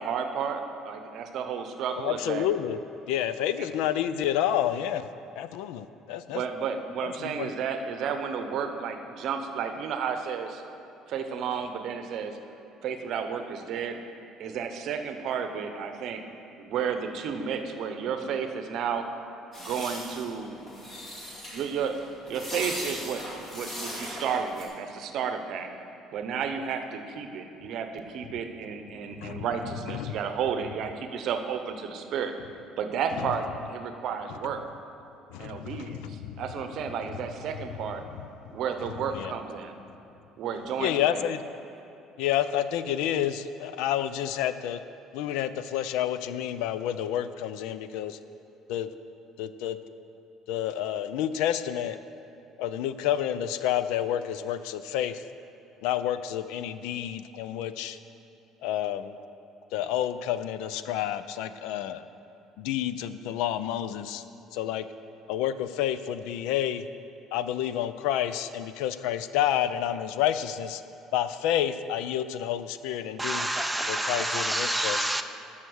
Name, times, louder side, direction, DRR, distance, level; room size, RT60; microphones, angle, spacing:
voice 1, 0.0-2.5 3.6-3.7 6.3-10.6 11.1-12.4 12.8-14.0 14.4-16.2 16.5-19.1 19.6-20.6 21.5-23.2 23.5-25.7 26.1-32.3 32.8-34.6 35.4-38.0 38.5-39.7 40.4-41.2, right 6 dB, 50° right, 0.8 m, -32 dB
voice 2, 2.0-2.8 3.1-5.1 5.4-6.4 7.0-7.5 29.2-29.5 29.9-30.2 33.2-33.3 35.3-36.4 39.1-39.3 40.8-41.4 42.2-44.8 45.1-48.2 48.7-48.9 49.4-49.8 50.5-52.0 52.6-55.2 55.8-58.0 58.6-59.2 59.7-62.0 62.6-64.2 64.5-64.9 65.3-66.8 67.3-70.8 71.1-73.5 73.9-75.0, left 11 dB, 85° left, 0.4 m, -29 dB
sound 1, 19.5-24.6, equal, 25° left, 2.1 m, -38 dB
voice 3, 73.2-75.2, right 1 dB, 5° right, 0.5 m, -28 dB
12.5 x 5.8 x 6.3 m
cardioid pair, 160°, 0 cm